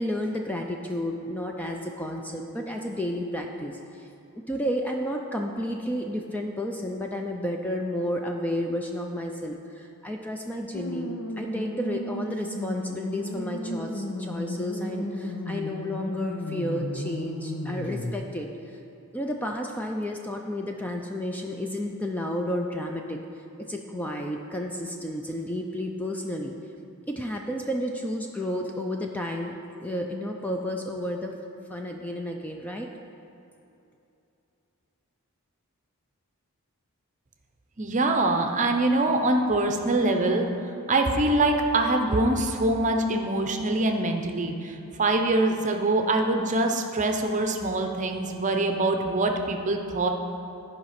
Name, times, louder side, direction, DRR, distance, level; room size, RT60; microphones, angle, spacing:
voice 1, 0.0-4.1 4.3-18.8 19.1-26.5 27.1-31.4 31.7-32.9, left 1 dB, 5° left, 2 dB, 0.4 m, -32 dB
sound 1, 10.7-18.1, left 1 dB, 70° left, 0.8 m, -34 dB
voice 2, 37.8-40.5 40.9-50.1, right 2 dB, 35° right, 4 dB, 0.7 m, -24 dB
12.0 x 5.2 x 5.8 m, 2.8 s
head